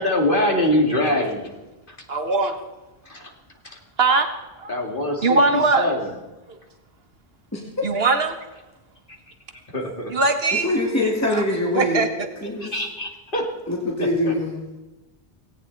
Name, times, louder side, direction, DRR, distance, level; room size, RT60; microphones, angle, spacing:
voice 1, 0.0-1.6 1.9-2.0 3.1-3.3 3.6-3.8 4.7-6.1 9.7-10.1 12.6-13.6 14.0-14.3, left 1 dB, 55° left, 2 dB, 2.7 m, -24 dB
voice 2, 2.1-2.6 4.0-4.3 4.6-4.8 5.2-5.9 6.5-6.6 7.8-8.4 10.1-10.7 11.3-11.4 11.7-12.3, right 3 dB, 70° right, 6 dB, 1.8 m, -20 dB
voice 3, 10.5-12.0 12.4-12.7 13.7-14.5, left 1 dB, 15° left, -2 dB, 2.4 m, -23 dB
18.0 x 17.5 x 4.1 m, 1.1 s
omnidirectional pair, 1.1 m